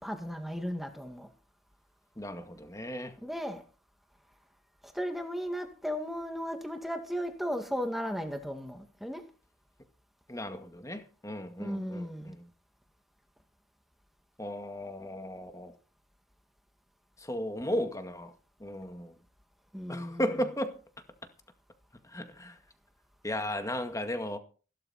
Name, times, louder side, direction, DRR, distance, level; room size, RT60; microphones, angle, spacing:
voice 1, 0.0-1.3 3.2-3.6 4.8-9.2 11.6-12.4 19.7-20.3, equal, ahead, 2.1 m, -35 dB
voice 2, 2.2-3.1 10.3-12.4 14.4-15.7 17.2-18.3 18.6-19.1 19.9-20.7 22.1-22.6 23.2-24.4, equal, 15° left, 2.0 m, -35 dB
16.5 x 13.0 x 4.3 m
head